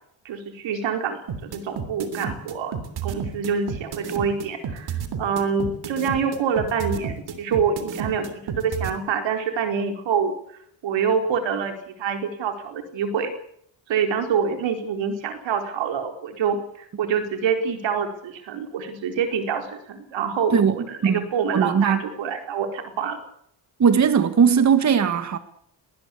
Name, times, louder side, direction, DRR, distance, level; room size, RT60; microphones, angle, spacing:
voice 1, 0.2-2.8 3.0-10.3 10.8-11.7 12.0-13.3 13.9-23.2, right 6 dB, 90° right, 4.6 m, -26 dB
sound 1, 1.3-8.9, right 7 dB, 60° right, 3.3 m, -30 dB
voice 2, 21.5-22.0 23.8-25.4, right 7 dB, 40° right, 1.8 m, -18 dB
19.5 x 19.5 x 8.5 m
cardioid pair, 130°, 43 cm